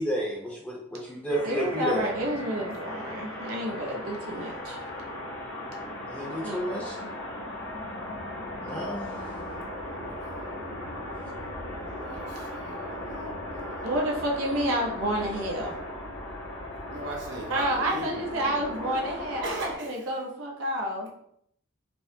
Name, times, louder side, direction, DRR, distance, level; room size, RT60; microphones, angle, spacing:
voice 1, 0.0-2.0 6.1-7.0 8.6-9.0, right 1 dB, 5° left, -3 dB, 0.7 m, -31 dB
sound 1, 1.3-19.7, left 1 dB, 75° left, 0.9 m, -37 dB
voice 2, 1.4-4.8 6.4-6.6 7.0-7.1 13.8-15.7 17.5-21.1, right 1 dB, 90° right, -1 dB, 0.8 m, -30 dB
voice 3, 2.6-3.0 10.2-10.4 12.0-14.0 16.9-19.0 19.4-20.1, right 1 dB, 60° right, -1 dB, 0.8 m, -39 dB
4.5 x 2.1 x 2.7 m, 0.69 s
head